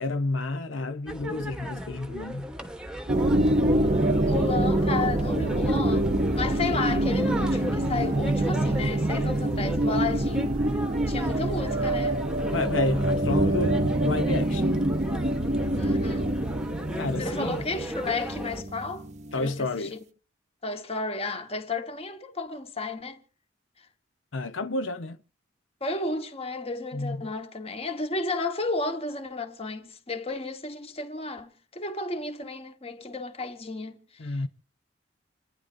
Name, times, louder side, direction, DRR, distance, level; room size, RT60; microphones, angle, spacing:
voice 1, 0.0-2.5 12.5-14.8 17.0-17.6 19.3-20.0 24.3-25.2 26.9-27.3 34.2-34.5, left 2 dB, 80° left, 0.8 m, -30 dB
sound 1, 1.1-18.6, right 1 dB, 5° right, 1.1 m, -37 dB
sound 2, 3.1-19.5, right 1 dB, 35° right, 0.7 m, -25 dB
voice 2, 4.3-6.1 6.4-10.6 11.1-12.2 15.7-16.3 17.2-19.1 19.3-20.0 20.6-23.2 23.8-23.9 25.8-34.5, left 3 dB, 30° left, 1.4 m, -33 dB
29.0 x 10.0 x 2.6 m
head